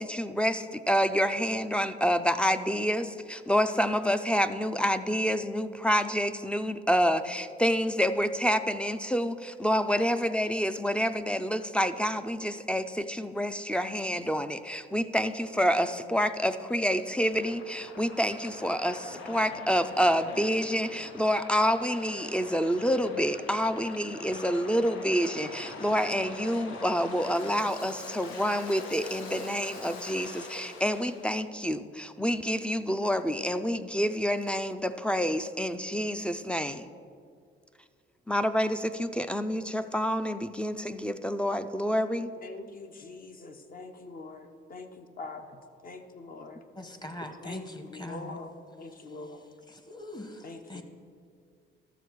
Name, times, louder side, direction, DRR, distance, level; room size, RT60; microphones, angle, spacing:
voice 1, 0.0-36.9 38.3-42.3, equal, 5° left, 10 dB, 0.4 m, -28 dB
Waves surf, 15.5-31.3, left 3 dB, 90° left, 1.0 m, -44 dB
voice 2, 42.4-46.6 47.4-49.6 50.4-50.8, left 3 dB, 45° left, 6 dB, 0.9 m, -44 dB
voice 3, 46.8-48.2 49.9-50.3 50.7-50.8, left 1 dB, 20° left, 7 dB, 1.1 m, -40 dB
13.0 x 6.6 x 4.6 m, 2.2 s
cardioid pair, 90°, 20 cm